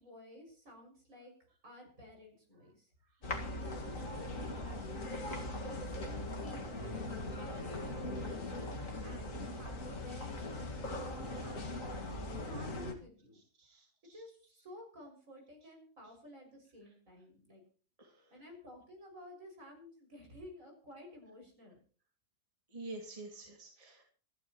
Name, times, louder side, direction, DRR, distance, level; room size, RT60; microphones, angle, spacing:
voice 1, 0.0-1.3 1.6-2.9 3.2-8.4 9.0-13.4 14.1-17.6 18.3-21.8, left 1 dB, 55° right, 1 dB, 6.9 m, -54 dB
sound 1, 3.2-12.9, left 1 dB, 55° left, 2.4 m, -40 dB
voice 2, 11.2-11.6 13.6-14.2 18.0-18.3 22.7-24.0, right 2 dB, 20° right, 0 dB, 2.5 m, -49 dB
27.0 x 11.0 x 3.1 m, 0.41 s
omnidirectional pair, 1.7 m